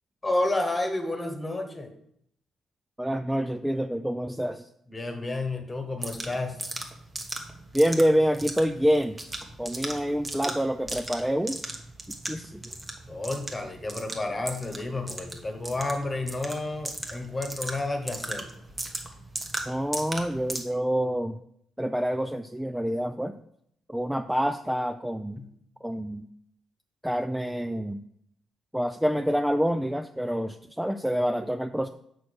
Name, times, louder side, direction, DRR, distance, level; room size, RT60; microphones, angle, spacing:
voice 1, 0.2-1.9 4.9-6.6 13.1-18.5 25.4-25.5, left 2 dB, 20° left, 5 dB, 1.3 m, -30 dB
voice 2, 3.0-4.7 7.7-9.2 9.6-11.6 12.3-12.6 19.7-21.4 21.8-23.4 23.9-25.4 25.8-26.3 27.0-28.0 28.7-31.9, equal, 5° right, 8 dB, 0.3 m, -27 dB
sound 1, 6.0-20.6, right 2 dB, 20° right, 1.2 m, -37 dB
6.3 x 4.6 x 6.4 m, 0.73 s
cardioid pair, 90°, 0 cm